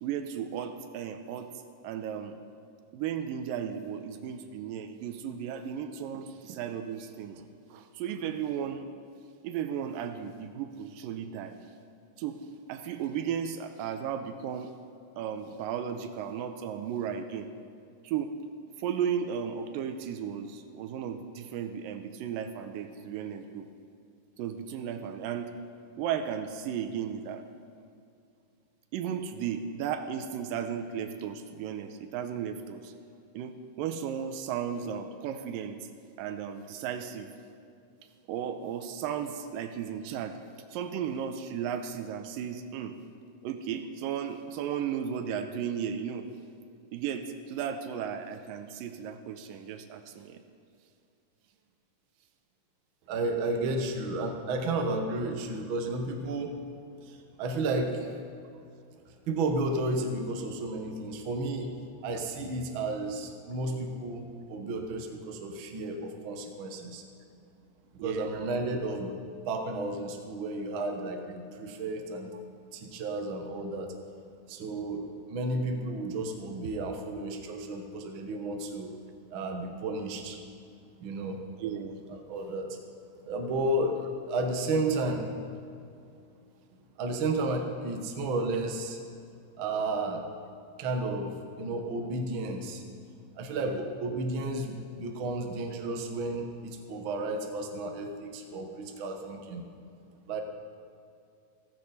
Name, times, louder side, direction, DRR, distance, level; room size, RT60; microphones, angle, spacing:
voice 1, 0.0-1.5 1.8-2.4 2.9-8.9 9.4-11.6 12.2-12.4 12.7-14.7 15.2-17.5 18.0-18.3 18.8-23.7 24.4-25.6 26.0-27.4 28.9-32.9 33.3-35.8 36.2-37.3 38.3-40.4 40.7-43.0 43.4-46.3 46.9-50.4 68.0-68.3 81.6-82.0 93.6-93.8, right 8 dB, 85° right, 8 dB, 2.4 m, -35 dB
voice 2, 53.1-56.6 57.4-58.1 59.3-61.7 62.0-67.0 68.0-72.3 72.7-73.9 74.5-79.0 79.3-80.4 81.0-81.4 82.1-82.8 83.2-85.3 87.0-89.0 89.6-90.2 90.8-92.8 93.4-99.6 100.3-100.4, right 2 dB, 60° right, 3 dB, 1.4 m, -32 dB
15.0 x 15.0 x 4.1 m, 2.4 s
omnidirectional pair, 4.0 m